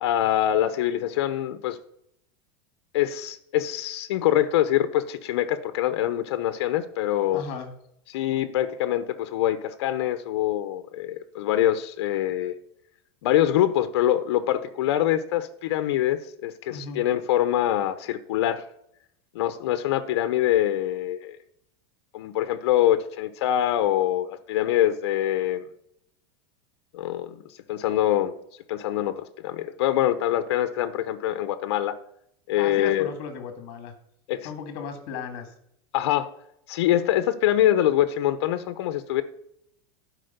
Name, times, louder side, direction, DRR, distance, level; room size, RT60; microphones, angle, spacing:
voice 1, 0.0-1.8 2.9-7.4 8.1-12.5 13.2-18.6 19.3-21.4 22.1-25.6 26.9-27.4 27.7-28.3 28.7-32.0 32.5-33.1 34.3-34.5 35.9-36.3 36.7-39.2, left 12 dB, 70° left, 12 dB, 0.8 m, -24 dB
voice 2, 7.3-7.7 16.7-17.0 32.6-33.9 34.4-35.5, left 5 dB, 45° left, 8 dB, 1.9 m, -35 dB
11.5 x 5.0 x 6.6 m, 0.75 s
supercardioid pair, 165°, 14 cm